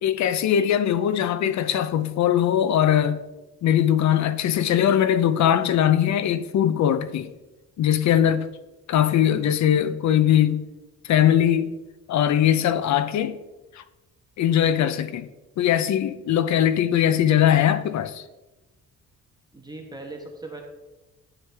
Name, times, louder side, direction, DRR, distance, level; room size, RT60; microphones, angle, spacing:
voice 1, 0.0-3.2 3.6-7.3 7.8-8.5 8.9-10.6 11.0-11.7 12.1-13.4 13.7-13.8 14.4-15.3 15.6-18.2, left 10 dB, 65° left, 0.7 m, -21 dB
voice 2, 19.5-20.6, right 2 dB, 15° right, 1.2 m, -38 dB
11.0 x 6.5 x 3.5 m
cardioid pair, 90°, 30 cm